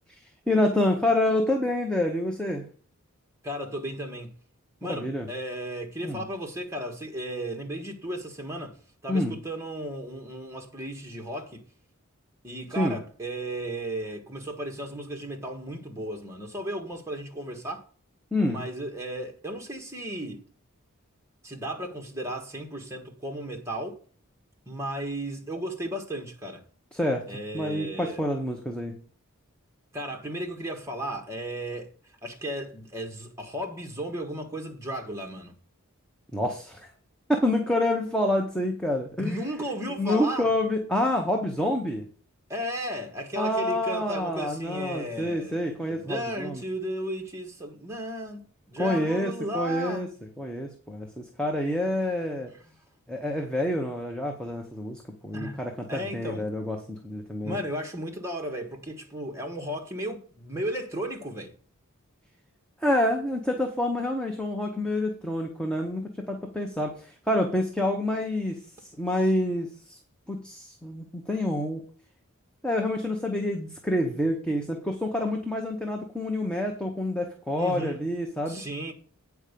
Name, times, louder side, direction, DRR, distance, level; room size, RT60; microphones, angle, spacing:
voice 1, 0.2-2.6 4.9-5.3 6.0-6.2 9.1-9.4 12.8-13.0 18.3-18.6 26.9-29.0 36.3-36.9 37.3-39.4 40.0-42.1 43.4-46.6 48.8-50.1 50.4-52.5 53.1-57.6 62.8-70.0 70.3-71.8 72.6-78.6, left 1 dB, 5° left, 0.8 m, -28 dB
voice 2, 3.4-4.4 4.8-8.8 9.0-11.6 12.4-17.9 18.5-20.4 21.4-24.0 24.7-26.6 27.3-28.2 29.9-35.5 39.2-40.5 42.5-45.6 45.9-50.0 55.3-55.6 55.9-56.5 57.4-61.5 77.6-78.0 78.5-78.9, right 1 dB, 15° right, 1.5 m, -35 dB
8.9 x 4.7 x 6.7 m
head